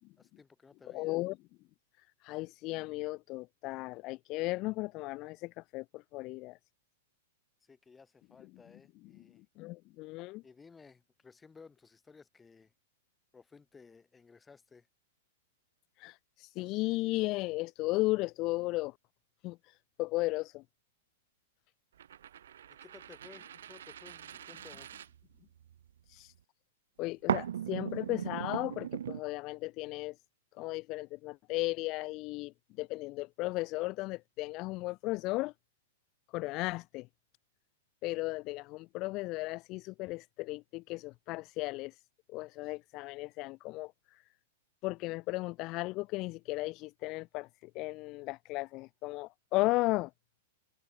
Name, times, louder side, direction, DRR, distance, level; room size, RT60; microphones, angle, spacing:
voice 1, 0.2-1.2 7.6-9.4 10.4-12.7 13.3-14.9 22.8-24.9, left 5 dB, 15° left, 7.4 m, -57 dB
voice 2, 0.9-1.4 2.0-6.6 9.6-10.4 16.0-19.0 19.4-20.6 26.1-26.3 27.0-30.2 30.6-35.5 36.3-37.1 38.0-42.0 42.3-44.3 44.8-50.1, left 21 dB, 45° left, 1.9 m, -35 dB
sound 1, 22.0-25.8 27.3-29.2, right 10 dB, 75° right, 0.6 m, -38 dB
hypercardioid pair, 110°, 0 cm